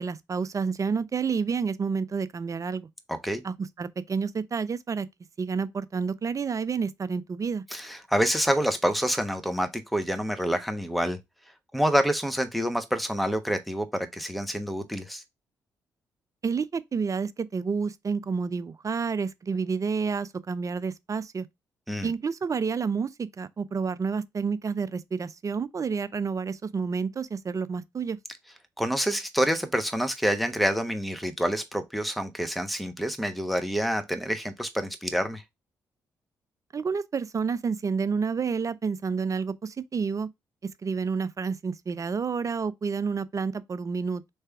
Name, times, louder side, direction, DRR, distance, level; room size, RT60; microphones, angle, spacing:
voice 1, 0.0-2.9 3.4-5.1 5.4-7.6 16.4-21.5 22.0-28.2 36.7-40.3 40.8-44.2, right 5 dB, 35° right, 0.5 m, -29 dB
voice 2, 3.1-3.4 7.7-11.2 11.7-15.2 21.9-22.1 28.8-35.4, equal, ahead, 1.0 m, -27 dB
3.3 x 3.3 x 4.6 m
hypercardioid pair, 40°, 9 cm